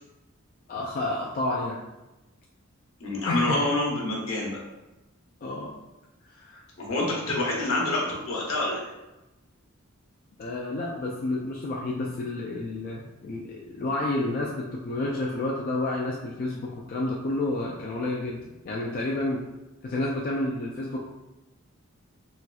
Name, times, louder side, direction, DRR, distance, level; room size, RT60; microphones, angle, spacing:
voice 1, 0.7-1.8 3.3-3.6 5.4-5.7 6.3-6.6 10.4-18.4 18.6-19.4 19.8-21.0, left 2 dB, 45° left, -3 dB, 0.3 m, -30 dB
voice 2, 3.0-4.6 6.8-8.9, left 2 dB, 75° left, -4 dB, 1.0 m, -27 dB
4.1 x 2.3 x 2.3 m, 1.0 s
head